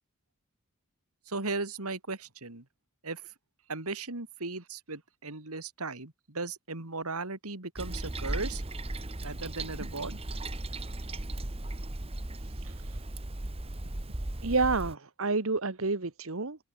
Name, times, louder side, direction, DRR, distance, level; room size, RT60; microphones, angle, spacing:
voice 1, 1.3-2.6 3.0-3.3 3.7-8.6 9.2-10.2 13.9-14.2, right 3 dB, 85° right, 3.1 m, -37 dB
Toilet flush, 7.8-14.9, right 1 dB, 25° right, 1.2 m, -36 dB
voice 2, 14.4-16.6, right 3 dB, 65° right, 1.4 m, -29 dB
open air
head